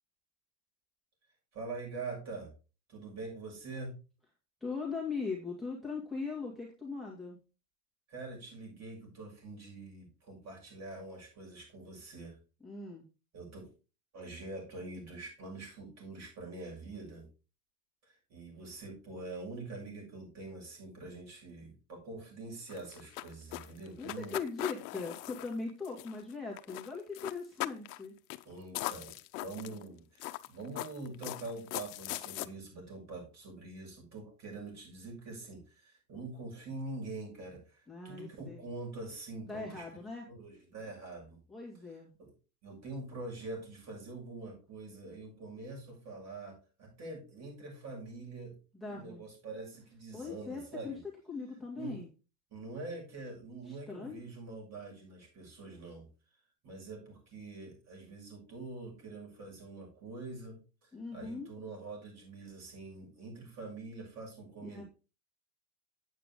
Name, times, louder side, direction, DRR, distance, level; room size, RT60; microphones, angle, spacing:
voice 1, 1.5-2.5 2.9-4.0 8.1-12.4 13.3-13.7 14.1-17.3 18.0-24.3 28.4-39.8 40.3-41.4 42.2-42.3 42.6-48.6 48.9-51.0 51.8-52.0 52.5-56.1 56.6-64.9, right 3 dB, 30° right, 0 dB, 6.7 m, -45 dB
voice 2, 4.6-7.4 12.6-13.0 24.0-28.2 37.9-38.6 39.5-40.3 41.5-42.1 48.7-49.2 50.1-51.0 51.3-52.1 53.7-54.2 60.9-61.5 64.6-64.8, left 4 dB, ahead, -2 dB, 2.1 m, -40 dB
sound 1, 22.7-26.3 26.6-26.9 27.2-28.0 28.3-28.4 28.7-29.8 30.2-32.5, left 18 dB, 75° left, 0.9 m, -40 dB
9.3 x 8.7 x 3.7 m, 0.32 s
supercardioid pair, 145°, 49 cm